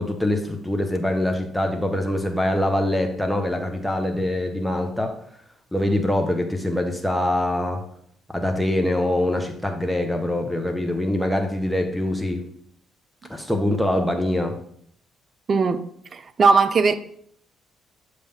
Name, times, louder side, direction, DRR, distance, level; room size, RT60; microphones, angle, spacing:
voice 1, 0.0-5.2 5.7-7.8 8.3-12.4 13.3-14.6, left 1 dB, 5° left, 1.1 m, -24 dB
voice 2, 15.5-15.8 16.1-16.9, right 4 dB, 45° right, 0.6 m, -18 dB
6.9 x 3.3 x 5.7 m
hypercardioid pair, 50°, 0 cm